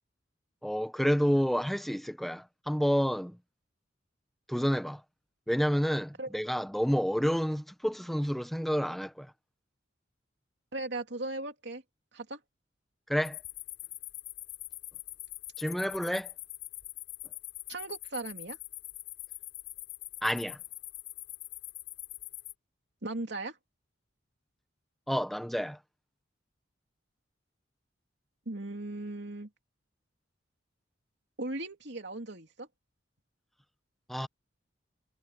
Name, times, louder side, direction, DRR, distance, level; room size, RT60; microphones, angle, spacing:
voice 1, 0.6-3.4 4.5-5.0 5.5-9.3 13.1-13.4 15.6-16.3 20.2-20.6 25.1-25.8 34.1-34.3, equal, ahead, 0.8 m, -29 dB
voice 2, 10.7-11.8 12.1-12.4 17.7-18.6 23.0-23.5 28.5-29.5 31.4-32.7, right 2 dB, 65° right, 3.1 m, -37 dB
sound 1, 13.2-22.5, left 17 dB, 85° left, 7.2 m, -44 dB
head